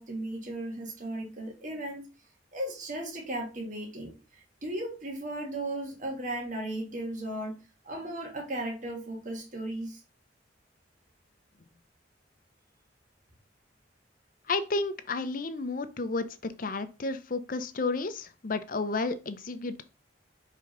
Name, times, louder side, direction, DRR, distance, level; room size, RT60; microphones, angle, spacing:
voice 1, 0.0-2.0 2.5-10.0, right 1 dB, 45° right, 0 dB, 1.7 m, -36 dB
voice 2, 14.5-19.8, left 3 dB, 50° left, 11 dB, 0.7 m, -32 dB
5.1 x 3.8 x 5.2 m, 0.31 s
head